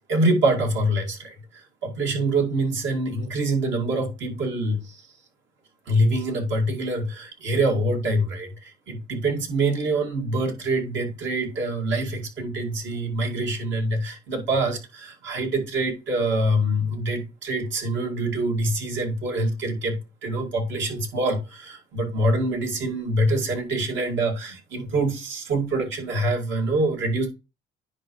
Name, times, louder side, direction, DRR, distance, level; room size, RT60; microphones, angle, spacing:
voice 1, 0.1-5.1 5.9-27.3, right 1 dB, 70° right, 2.3 m, -25 dB
9.9 x 4.9 x 3.2 m
cardioid pair, 90°, 20 cm